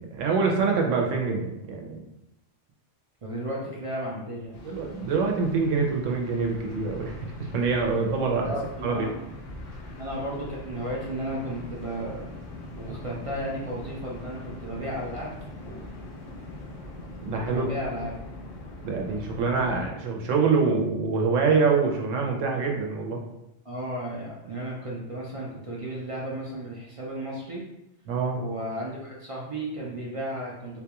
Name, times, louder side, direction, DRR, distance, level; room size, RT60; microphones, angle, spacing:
voice 1, 0.0-2.0 4.6-8.5 8.8-9.1 17.2-17.7 18.8-23.2 28.1-28.4, right 4 dB, 85° right, 1 dB, 1.0 m, -25 dB
voice 2, 3.2-4.6 8.4-9.1 10.0-12.2 12.8-15.3 15.6-15.8 17.5-18.1 23.6-27.6 28.3-30.8, right 1 dB, 50° right, -4 dB, 0.4 m, -34 dB
sound 1, 4.5-19.9, left 1 dB, 85° left, 1.2 m, -42 dB
3.8 x 2.3 x 2.9 m, 0.89 s
omnidirectional pair, 1.3 m